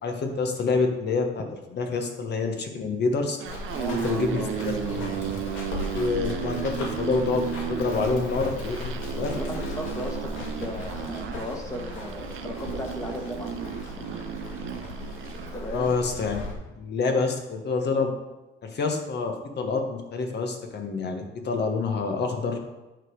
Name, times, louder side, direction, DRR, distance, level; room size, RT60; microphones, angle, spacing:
voice 1, 0.0-3.4 3.9-5.1 5.9-7.4 7.7-9.3 15.7-16.4 16.8-18.1 18.6-22.6, left 4 dB, 60° left, 4 dB, 1.6 m, -27 dB
sound 1, 3.4-15.6, right 10 dB, 80° right, 0.6 m, -34 dB
Run, 3.5-16.5, left 2 dB, 85° left, 1.9 m, -37 dB
voice 2, 3.7-5.0 9.2-14.0 15.5-15.9, left 1 dB, 15° left, 0 dB, 1.5 m, -36 dB
9.7 x 5.2 x 4.8 m, 1.0 s
cardioid pair, 90°, 20 cm